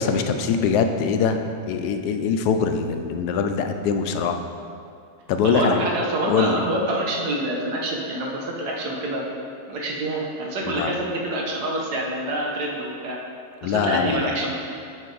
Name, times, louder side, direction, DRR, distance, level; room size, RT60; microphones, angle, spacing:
voice 1, 0.0-1.4 1.7-4.4 5.3-5.8 6.3-6.6 10.7-10.9 13.6-14.5, left 6 dB, 80° left, 6 dB, 1.1 m, -23 dB
voice 2, 5.4-9.2 9.7-13.2 13.6-14.5, right 1 dB, 85° right, -2 dB, 1.6 m, -26 dB
9.0 x 5.5 x 3.9 m, 2.4 s
omnidirectional pair, 1.7 m